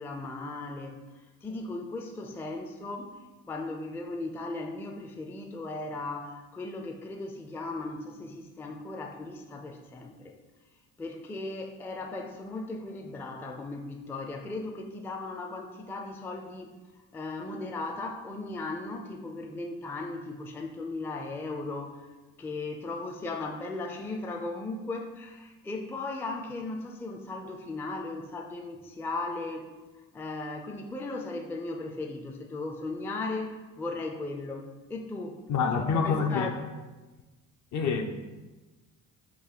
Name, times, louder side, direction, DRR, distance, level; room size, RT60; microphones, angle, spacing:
voice 1, 0.0-10.3 11.0-16.7 17.1-22.1 22.4-36.6, left 2 dB, 5° left, 3 dB, 0.3 m, -37 dB
voice 2, 35.5-36.5 37.7-38.2, left 5 dB, 55° left, 5 dB, 0.6 m, -27 dB
4.0 x 2.6 x 4.5 m, 1.2 s
supercardioid pair, 75°, 37 cm